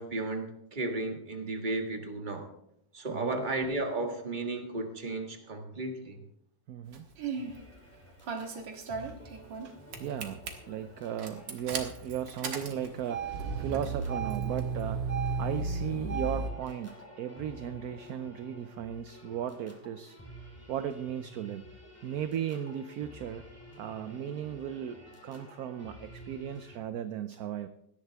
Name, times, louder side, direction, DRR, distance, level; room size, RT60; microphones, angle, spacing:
voice 1, 0.0-2.5 2.9-6.2, right 2 dB, 25° right, 3 dB, 1.7 m, -34 dB
voice 2, 3.1-3.5 6.7-7.1 8.4-9.2 9.6-10.4 10.7-20.2 20.7-21.6 22.0-23.4 23.8-27.7, right 9 dB, 65° right, 10 dB, 1.0 m, -36 dB
Engine starting, 6.9-7.5 8.3-9.7 9.9-10.5 11.2-16.5, right 4 dB, 85° right, 2.3 m, -34 dB
sound 1, 7.4-26.8, equal, 10° left, 2.3 m, -51 dB
17.5 x 12.0 x 3.5 m, 0.77 s
omnidirectional pair, 1.9 m